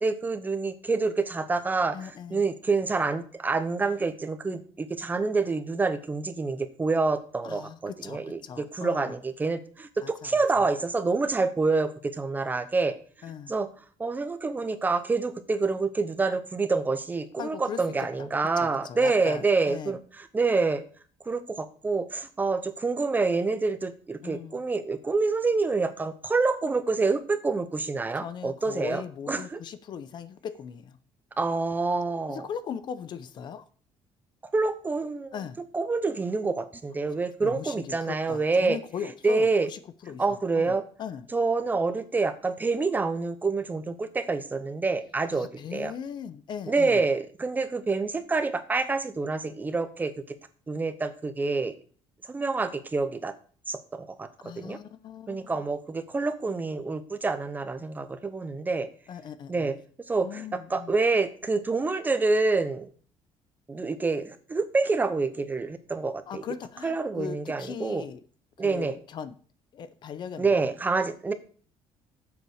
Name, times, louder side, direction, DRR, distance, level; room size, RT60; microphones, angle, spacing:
voice 1, 0.0-13.0 13.5-13.7 14.0-20.8 21.3-29.0 29.3-29.6 31.4-32.4 34.5-35.3 35.7-38.8 39.2-39.7 40.2-40.8 41.3-45.9 46.7-50.1 50.7-51.7 52.3-53.3 53.7-54.3 54.6-54.8 55.3-58.9 59.5-59.8 60.1-62.9 63.7-66.4 66.8-68.0 68.6-69.0 70.4-71.3, right 3 dB, 15° right, 0.8 m, -27 dB
voice 2, 1.9-2.4 7.4-9.2 10.0-10.3 10.5-10.6 13.2-13.5 17.4-18.3 18.6-20.0 24.2-24.6 28.2-31.0 32.3-33.6 35.3-35.6 37.4-41.3 45.3-47.0 54.4-55.5 59.1-59.7 60.2-61.0 66.3-68.2 68.6-69.4 69.7-70.7, left 7 dB, 45° left, 0.7 m, -39 dB
8.0 x 7.0 x 6.4 m
cardioid pair, 160°, 11 cm